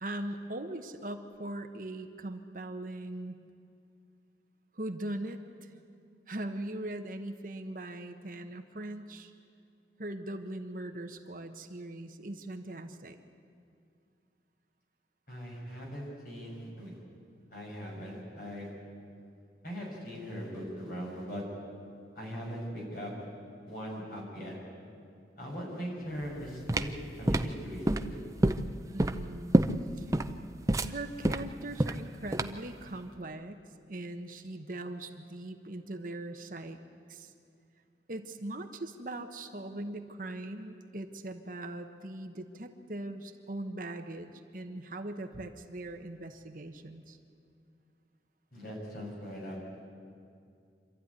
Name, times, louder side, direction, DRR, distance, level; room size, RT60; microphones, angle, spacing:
voice 1, 0.0-3.4 4.7-5.7 6.3-9.3 10.0-13.2 28.9-29.6 30.0-30.1 30.8-33.6 33.9-36.8 37.1-37.3 38.1-47.2, right 1 dB, 50° right, 6 dB, 1.1 m, -40 dB
voice 2, 15.3-17.0 17.5-18.7 19.6-21.4 22.1-23.1 23.7-24.6 25.4-28.2 48.5-49.8, equal, 50° left, -2 dB, 6.4 m, -40 dB
sound 1, 26.2-32.7, right 1 dB, 20° right, 0.5 m, -28 dB
26.0 x 13.0 x 9.6 m, 2.4 s
head